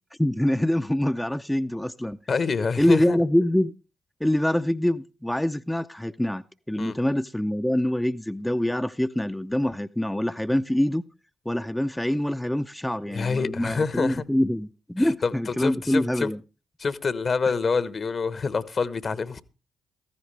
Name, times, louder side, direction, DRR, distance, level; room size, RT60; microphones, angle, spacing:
voice 1, 0.2-2.2 2.8-3.7 4.2-11.0 11.5-16.4, left 1 dB, 5° left, 0.6 m, -25 dB
voice 2, 2.3-3.2 6.8-6.9 13.1-14.2 15.0-16.3 16.8-19.4, left 4 dB, 50° left, 1.1 m, -27 dB
15.5 x 14.5 x 3.3 m
hypercardioid pair, 40°, 0 cm